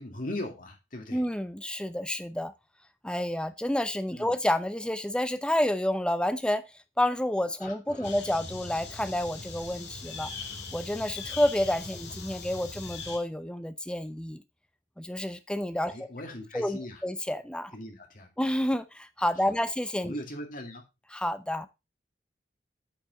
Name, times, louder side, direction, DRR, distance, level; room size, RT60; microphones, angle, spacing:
voice 1, 0.0-1.2 4.1-4.3 7.6-8.1 15.9-17.0 17.7-18.3 19.5-19.6 20.0-20.8, left 1 dB, 50° left, 3 dB, 2.2 m, -39 dB
voice 2, 1.1-2.5 3.0-6.7 7.0-10.3 10.7-14.4 15.0-15.9 16.5-17.7 18.4-20.1 21.1-21.7, left 1 dB, 5° left, 11 dB, 0.6 m, -29 dB
sound 1, 8.0-13.2, left 4 dB, 70° left, 2.2 m, -40 dB
8.6 x 5.3 x 4.0 m, 0.24 s
head